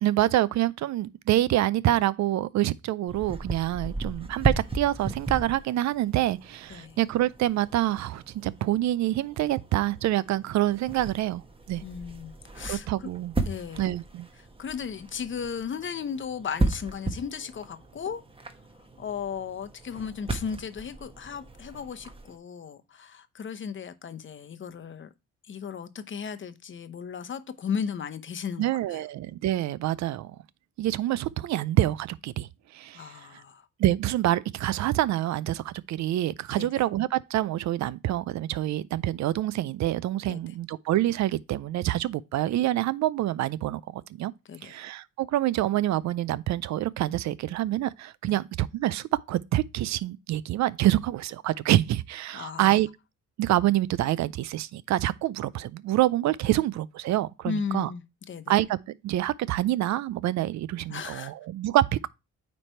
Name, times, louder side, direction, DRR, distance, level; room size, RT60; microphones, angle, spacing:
voice 1, 0.0-11.4 11.7-11.8 12.7-13.3 13.8-14.3 28.6-30.4 30.8-33.1 33.8-44.3 44.6-52.9 53.4-57.9 58.5-58.8 59.0-62.1, right 14 dB, 65° right, 0.4 m, -26 dB
sound 1, 3.1-22.4, right 2 dB, 20° right, 1.1 m, -36 dB
voice 2, 11.8-12.9 13.5-13.9 14.6-18.2 19.0-25.1 25.5-29.0 32.9-33.6 36.6-36.7 40.3-40.4 44.4-44.8 48.3-48.4 52.3-52.7 57.4-58.5 60.9-61.3, left 6 dB, 40° left, 0.8 m, -35 dB
9.1 x 3.3 x 4.4 m
cardioid pair, 90°, 30 cm